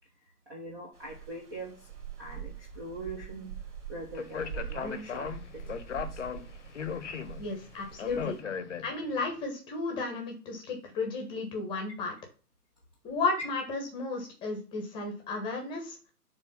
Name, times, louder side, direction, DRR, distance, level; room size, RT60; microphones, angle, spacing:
voice 1, 0.5-1.9 2.2-3.5 3.9-6.2 13.3-13.4, right 2 dB, 15° right, -2 dB, 0.7 m, -42 dB
sound 1, 0.9-8.4, right 8 dB, 60° right, 3.6 m, -44 dB
Speech, 4.2-9.2, left 7 dB, 45° left, 0.9 m, -37 dB
voice 2, 7.4-8.4 8.8-12.1 13.0-16.0, left 3 dB, 10° left, 2 dB, 1.1 m, -33 dB
7.1 x 3.4 x 5.7 m, 0.36 s
figure-of-eight pair, 140°, 48 cm